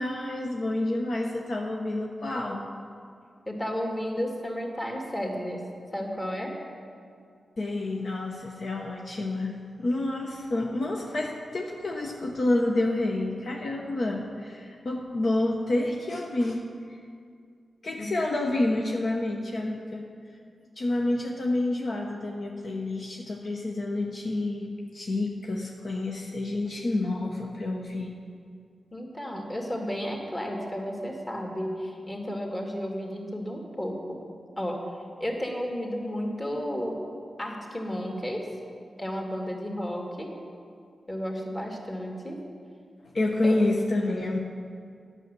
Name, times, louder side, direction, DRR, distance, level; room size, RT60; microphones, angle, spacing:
voice 1, 0.0-2.7 7.6-16.6 16.9-17.0 17.8-20.1 20.8-28.2 43.1-44.4, left 2 dB, 60° left, 0 dB, 0.9 m, -29 dB
voice 2, 3.5-5.6 5.9-6.5 18.0-18.1 28.9-34.2 34.6-34.8 35.2-37.0 37.4-38.4 39.0-40.3 41.1-42.4 43.4-43.6, equal, 25° left, 0 dB, 2.2 m, -32 dB
9.2 x 6.5 x 7.5 m, 2.3 s
cardioid pair, 50°, 0 cm